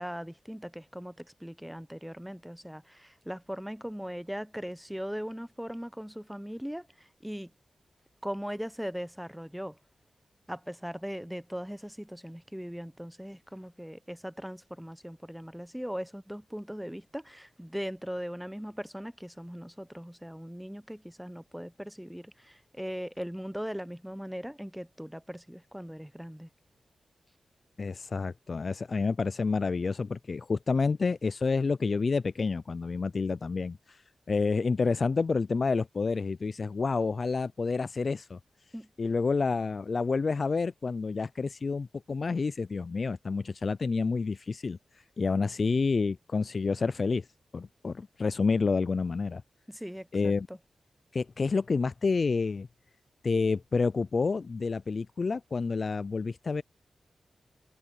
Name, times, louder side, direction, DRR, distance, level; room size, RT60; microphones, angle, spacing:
voice 1, 0.0-7.5 8.2-9.8 10.5-26.5 38.7-38.9 49.7-50.6, equal, 5° right, 0.7 m, -39 dB
voice 2, 27.8-34.0 34.3-38.4 39.0-47.3 47.5-49.4 50.1-50.5 51.1-52.7 53.2-56.6, left 4 dB, 55° left, 0.4 m, -29 dB
cardioid pair, 55°, 0 cm